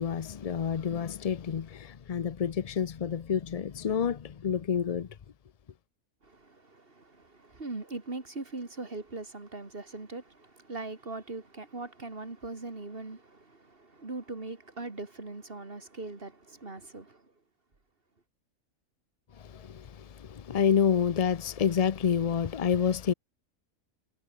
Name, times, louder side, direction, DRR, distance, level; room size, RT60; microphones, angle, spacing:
voice 1, 0.0-5.1 19.5-19.9 20.2-23.1, left 7 dB, 60° left, 0.4 m, -28 dB
voice 2, 6.2-17.2, right 3 dB, 40° right, 3.1 m, -41 dB
omnidirectional pair, 1.5 m